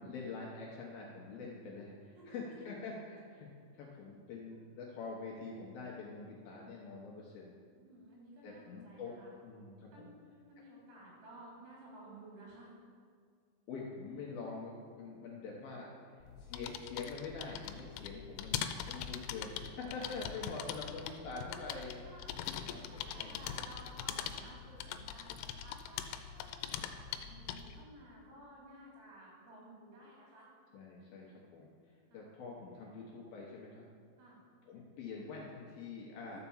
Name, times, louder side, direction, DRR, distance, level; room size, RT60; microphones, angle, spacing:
voice 1, 0.0-7.5 8.4-9.1 9.4-10.1 13.7-22.0 22.4-23.4 30.7-33.8 34.6-36.4, left 4 dB, 70° left, -3 dB, 2.4 m, -45 dB
voice 2, 2.1-2.7 7.5-9.3 9.9-10.2 10.5-12.7 20.0-20.9 22.1-26.0 26.3-30.5 32.1-32.3 34.2-34.4 36.3-36.4, right 1 dB, 85° right, -5 dB, 5.9 m, -55 dB
sound 1, 16.2-27.8, left 9 dB, 90° left, 3.1 m, -42 dB
12.5 x 5.9 x 7.1 m, 2.1 s
omnidirectional pair, 5.4 m